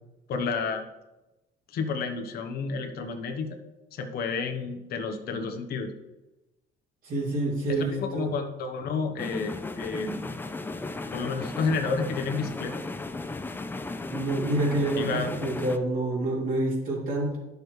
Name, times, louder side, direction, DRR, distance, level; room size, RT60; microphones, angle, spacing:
voice 1, 0.3-0.8 1.7-3.6 3.9-5.9 7.7-10.3 11.1-12.8 15.0-15.3, left 4 dB, 65° left, 5 dB, 1.1 m, -30 dB
voice 2, 7.0-8.3 14.1-17.4, right 1 dB, 55° right, -3 dB, 3.3 m, -28 dB
sound 1, 9.2-15.8, left 3 dB, 10° left, 0.4 m, -35 dB
10.5 x 6.8 x 3.3 m, 1.0 s
cardioid pair, 110°, 17 cm